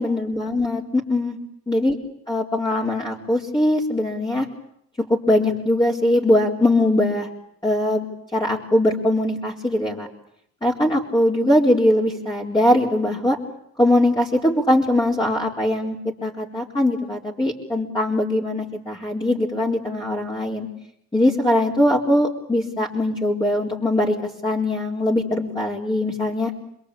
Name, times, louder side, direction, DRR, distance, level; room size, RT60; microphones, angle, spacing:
voice 1, 0.0-1.4 1.7-2.0 2.3-4.5 5.1-7.3 7.6-8.1 8.3-10.1 10.6-13.4 13.8-16.0 16.2-20.7 21.1-24.1 24.4-26.5, left 1 dB, 15° left, -3 dB, 4.4 m, -21 dB
27.5 x 22.5 x 8.7 m, 0.73 s
cardioid pair, 90°, 30 cm